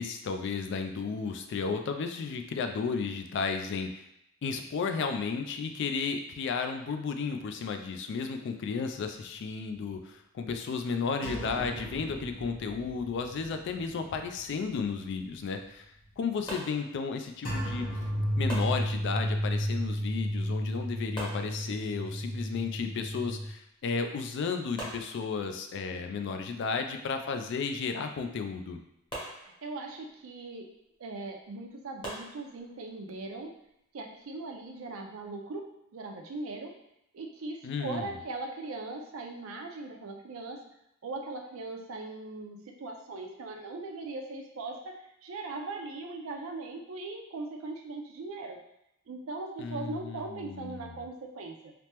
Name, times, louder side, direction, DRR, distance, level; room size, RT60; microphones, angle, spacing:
voice 1, 0.0-4.0 4.4-15.9 16.2-17.9 18.4-28.8 37.6-38.1 49.6-51.0, left 5 dB, 60° left, 6 dB, 0.3 m, -33 dB
sound 1, 11.2-14.4 14.7-14.8 17.5-23.5, equal, 45° left, 1.1 m, -33 dB
sound 2, 16.5-17.5 18.5-19.5 21.1-22.2 23.8-23.9 24.2-24.3 24.8-25.8 29.1-30.1 32.0-32.9, right 1 dB, 25° left, 0.9 m, -43 dB
voice 2, 29.4-30.7 31.0-33.5 33.9-35.7 35.9-36.7 37.1-40.6 41.0-48.6 49.1-51.7, right 3 dB, 80° right, 2 dB, 0.5 m, -39 dB
3.3 x 2.0 x 2.9 m, 0.80 s
head